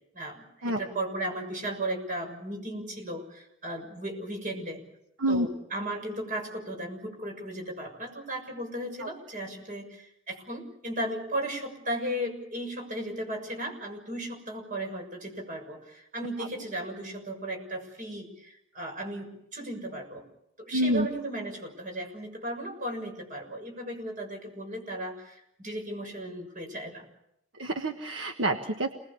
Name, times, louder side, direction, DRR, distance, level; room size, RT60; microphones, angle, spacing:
voice 1, 0.1-4.8 5.3-20.2 20.6-27.1, right 1 dB, 40° right, 3 dB, 6.8 m, -36 dB
voice 2, 20.7-21.1 27.5-28.9, right 1 dB, 70° right, 4 dB, 1.5 m, -27 dB
28.0 x 20.5 x 7.1 m, 0.78 s
head